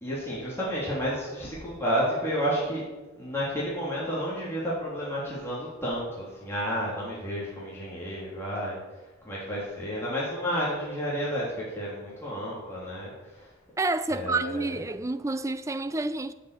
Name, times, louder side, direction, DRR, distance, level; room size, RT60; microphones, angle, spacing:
voice 1, 0.0-2.8 3.2-8.8 9.2-13.5 14.1-14.8, equal, 10° left, 3.1 m, -31 dB
voice 2, 13.8-16.3, right 3 dB, 15° right, 0.4 m, -29 dB
8.1 x 7.7 x 8.2 m
head